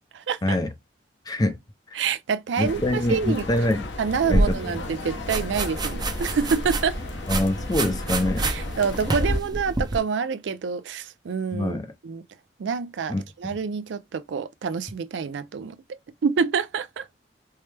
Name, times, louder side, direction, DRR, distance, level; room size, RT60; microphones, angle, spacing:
voice 1, 0.1-0.6 1.9-3.5 4.0-7.0 8.4-11.8 12.0-12.2 12.6-17.1, right 6 dB, 80° right, 0.4 m, -27 dB
voice 2, 1.3-1.6 2.6-3.9 4.3-4.6 7.3-8.5 11.5-11.9 13.1-13.2, left 1 dB, 20° left, 0.4 m, -24 dB
sound 1, 2.6-9.4, left 1 dB, 90° left, 0.9 m, -34 dB
sound 2, 4.3-10.0, right 2 dB, 25° right, 0.6 m, -28 dB
4.5 x 2.0 x 3.3 m
head